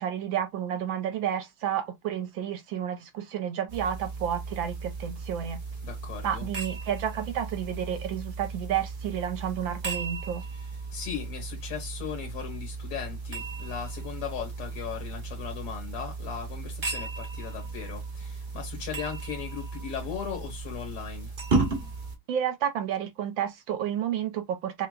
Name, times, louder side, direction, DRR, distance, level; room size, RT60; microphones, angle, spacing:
voice 1, 0.0-5.6 6.2-10.4 22.3-24.9, right 9 dB, 70° right, 1.3 m, -31 dB
sound 1, 3.7-22.2, right 3 dB, 30° right, 1.1 m, -35 dB
voice 2, 5.8-6.5 10.9-21.3, left 8 dB, 85° left, 2.3 m, -37 dB
5.6 x 2.2 x 2.4 m
omnidirectional pair, 2.4 m